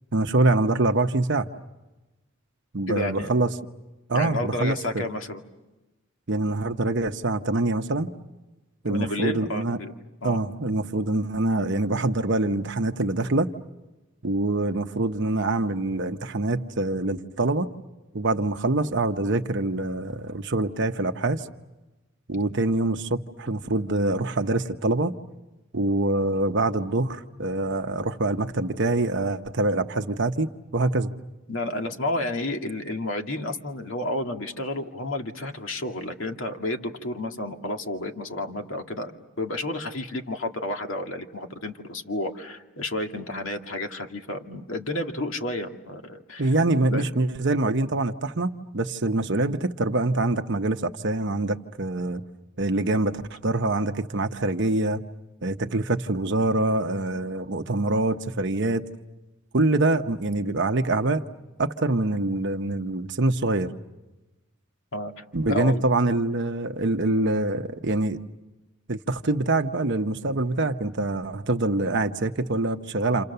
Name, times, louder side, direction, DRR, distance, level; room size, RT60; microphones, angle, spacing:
voice 1, 0.1-1.5 2.7-3.5 4.1-5.0 6.3-8.1 8.8-9.8 10.2-13.5 14.2-17.7 18.1-21.5 22.3-25.1 25.7-31.2 46.4-52.2 52.6-53.1 53.4-55.0 55.4-58.8 59.5-61.2 61.6-63.7 65.3-68.2 68.9-73.2, right 2 dB, 60° right, 6 dB, 1.0 m, -25 dB
voice 2, 2.9-3.3 4.1-5.4 8.9-9.9 10.2-10.4 31.5-46.5 46.9-47.1 64.9-65.8, left 1 dB, 70° left, 4 dB, 2.3 m, -31 dB
29.5 x 28.5 x 6.8 m, 1.1 s
head